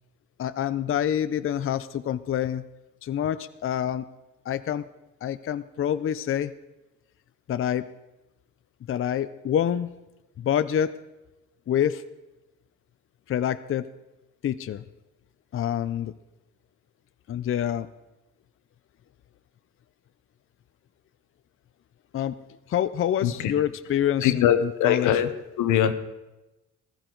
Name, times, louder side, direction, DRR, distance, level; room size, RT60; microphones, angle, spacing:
voice 1, 0.4-2.6 3.0-4.0 4.5-4.8 5.2-6.5 7.5-7.9 8.9-9.9 10.4-10.9 11.7-12.0 13.3-13.9 14.4-14.8 15.5-16.1 17.3-17.9 22.1-22.4 22.7-25.2, left 10 dB, 45° left, 13 dB, 0.5 m, -26 dB
voice 2, 24.2-25.3 25.6-25.9, left 10 dB, 90° left, 10 dB, 1.0 m, -21 dB
15.0 x 13.0 x 3.9 m, 1.0 s
cardioid pair, 90°, 30 cm